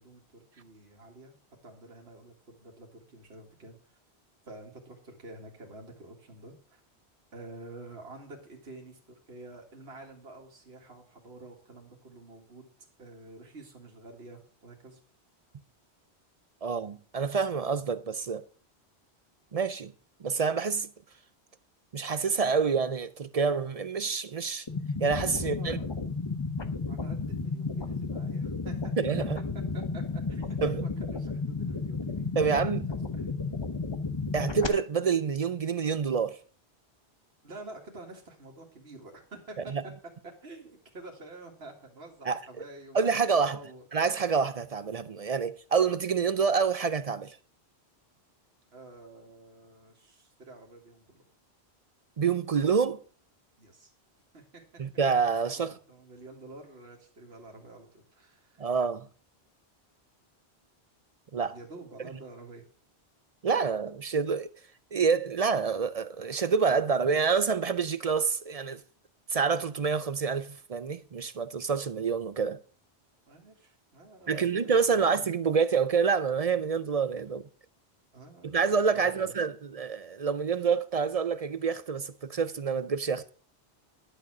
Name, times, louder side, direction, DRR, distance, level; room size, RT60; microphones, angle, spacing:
voice 1, 0.0-1.3 1.6-3.8 4.5-6.8 7.3-9.0 9.3-12.7 13.0-15.0 25.4-25.9 26.9-29.0 29.7-32.3 33.1-33.3 37.4-39.7 40.2-43.2 43.5-43.8 48.7-51.2 53.6-53.9 54.3-54.6 55.5-58.7 61.5-62.6 73.3-75.2 78.1-78.5 78.9-79.3, right 2 dB, 70° right, 2.2 m, -48 dB
voice 2, 16.6-18.4 19.5-19.9 20.2-20.9 21.9-24.7 25.0-25.8 29.0-29.4 30.6-30.9 32.4-32.8 34.3-36.4 39.7-39.8 42.3-42.4 42.9-43.6 43.9-47.4 52.2-53.0 54.8-55.7 58.6-59.1 61.3-61.6 63.4-64.5 64.9-68.8 69.3-72.6 74.3-77.4 78.4-83.3, right 5 dB, 45° right, 0.5 m, -27 dB
sound 1, 24.7-34.7, left 4 dB, 25° left, 0.8 m, -33 dB
11.0 x 6.7 x 6.1 m
omnidirectional pair, 1.1 m